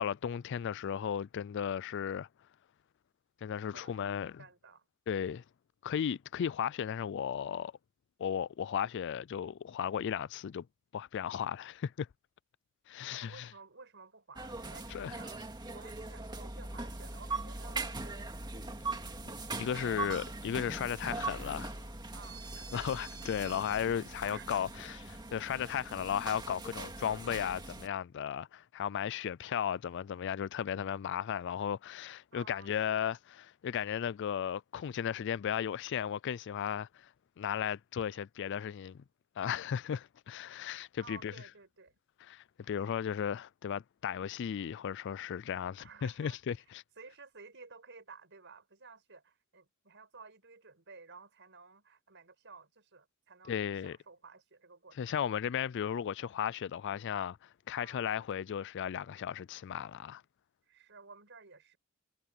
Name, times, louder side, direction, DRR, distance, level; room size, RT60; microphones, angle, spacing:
voice 1, 0.0-2.3 3.4-4.3 5.1-5.4 5.8-7.7 8.2-10.7 10.9-12.1 12.9-13.5 14.9-15.1 19.6-21.7 22.7-33.2 33.6-37.1 37.4-39.0 39.4-41.3 42.3-46.8 53.5-54.0 55.0-60.2, left 8 dB, 60° left, 0.3 m, -35 dB
voice 2, 3.7-4.9 13.1-18.3 21.0-21.6 22.1-22.4 24.2-24.7 32.3-33.2 41.0-41.9 42.7-42.9 45.8-46.4 47.0-55.2 57.7-58.0 60.7-61.8, right 4 dB, 60° right, 5.9 m, -54 dB
sound 1, 14.4-27.9, right 3 dB, 20° right, 2.2 m, -41 dB
head